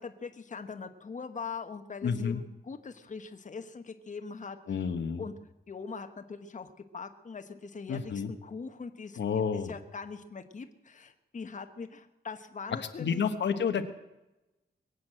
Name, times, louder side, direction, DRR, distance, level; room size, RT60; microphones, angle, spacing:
voice 1, 0.0-5.3 5.7-9.2 9.5-13.2, left 5 dB, 45° left, 7 dB, 1.2 m, -42 dB
voice 2, 2.0-2.4 4.7-5.2 7.9-8.3 9.2-9.7 12.8-13.8, left 6 dB, 80° left, 7 dB, 1.2 m, -30 dB
22.0 x 8.3 x 7.7 m, 0.97 s
wide cardioid pair, 110°, 18 cm